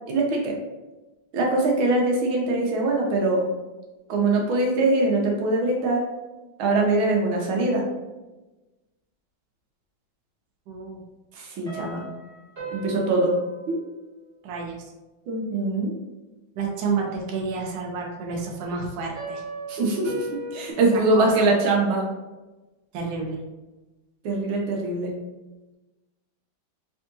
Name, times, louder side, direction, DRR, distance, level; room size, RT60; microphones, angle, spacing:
voice 1, 0.1-0.5 1.3-3.5 4.1-6.0 6.6-7.8 11.4-12.0 12.7-13.3 13.7-13.8 15.3-15.9 19.7-22.0 24.2-25.1, right 2 dB, 85° right, 0 dB, 1.5 m, -22 dB
voice 2, 10.7-11.0 14.4-14.9 16.6-19.4 21.1-21.5 22.9-23.4, right 4 dB, 70° right, 0 dB, 1.3 m, -30 dB
sound 1, 11.7-14.3 19.2-20.7, right 2 dB, 35° right, 1.5 m, -37 dB
3.6 x 3.5 x 2.6 m, 1.1 s
omnidirectional pair, 2.2 m